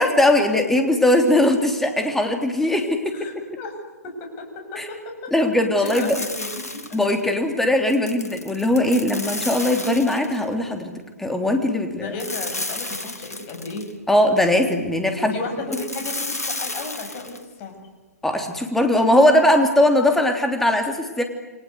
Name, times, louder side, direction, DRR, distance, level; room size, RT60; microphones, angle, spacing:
voice 1, 0.0-3.1 4.8-4.9 5.3-6.2 6.9-10.9 11.2-12.1 14.1-15.3 18.2-21.2, left 1 dB, 5° left, 5 dB, 3.4 m, -19 dB
voice 2, 3.1-3.8 4.0-5.3 5.8-6.9 7.6-7.7 12.0-13.9 15.2-17.7, left 3 dB, 30° left, 4 dB, 7.3 m, -34 dB
sound 1, 5.8-7.2 7.9-10.4 12.2-13.9 15.7-17.4, left 2 dB, 85° left, 2.7 m, -32 dB
29.5 x 23.0 x 8.2 m, 1.3 s
figure-of-eight pair, 125°, 8 cm